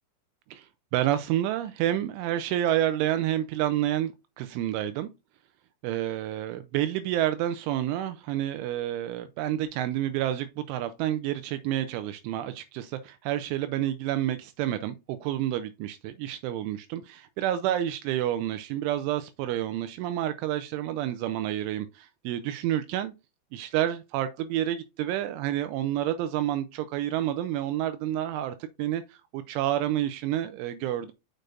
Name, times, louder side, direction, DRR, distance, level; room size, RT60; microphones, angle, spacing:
voice 1, 0.5-5.1 5.8-23.1 23.5-31.1, right 12 dB, 85° right, 2.9 m, -29 dB
6.6 x 6.3 x 2.5 m
omnidirectional pair, 5.6 m